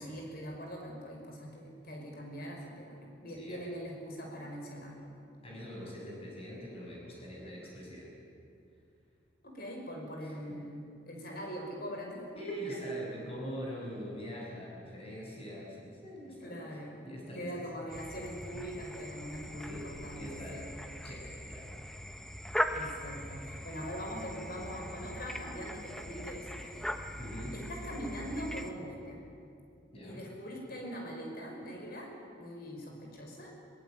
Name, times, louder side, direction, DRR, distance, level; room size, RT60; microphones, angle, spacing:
voice 1, 0.0-5.1 9.5-12.2 12.5-12.8 16.4-17.0 17.3-20.6 22.7-26.9 27.5-29.2 30.0-32.1 32.4-33.5, equal, 50° left, 1 dB, 5.6 m, -42 dB
voice 2, 3.3-3.6 5.4-8.1 10.2-10.3 12.3-16.8 17.0-17.5 18.5-18.7 19.6-19.9 20.1-20.6 21.0-21.7 22.4-22.5 27.2-27.6 29.9-30.2, equal, 30° left, -4 dB, 6.6 m, -43 dB
sound 1, 17.9-28.7, equal, 5° left, 1.0 m, -40 dB
22.5 x 20.0 x 9.2 m, 2.5 s
head